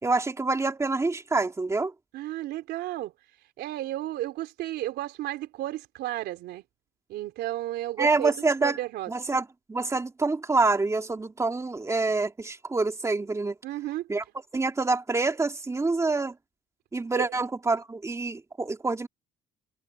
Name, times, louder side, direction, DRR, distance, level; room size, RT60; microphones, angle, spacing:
voice 1, 0.0-1.9 8.0-8.8 9.1-13.5 14.1-14.2 14.5-16.3 16.9-19.1, right 3 dB, 15° right, 2.7 m, -26 dB
voice 2, 2.1-3.1 3.6-6.6 7.1-9.1 13.6-14.1 17.1-17.3, right 15 dB, 80° right, 3.9 m, -33 dB
cardioid pair, 110°, 17 cm